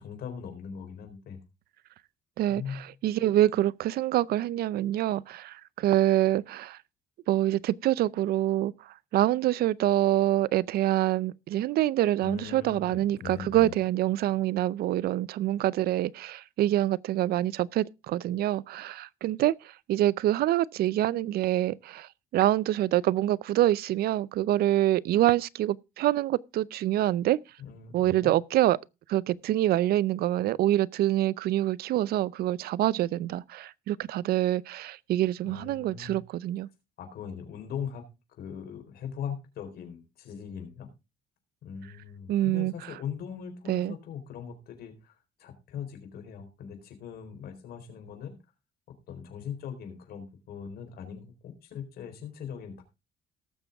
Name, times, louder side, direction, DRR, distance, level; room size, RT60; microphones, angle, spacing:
voice 1, 0.0-1.4 2.5-2.8 12.2-13.8 27.6-28.3 35.4-36.2 37.0-38.0 38.4-40.9 41.6-45.1 45.4-48.3 49.1-52.8, left 7 dB, 65° left, 4.1 m, -40 dB
voice 2, 2.4-6.8 7.3-8.7 9.1-19.5 19.9-27.4 27.9-28.8 29.1-36.7 42.3-42.7 43.7-43.9, right 14 dB, 65° right, 0.5 m, -26 dB
18.5 x 6.9 x 3.5 m
cardioid pair, 110°, 17 cm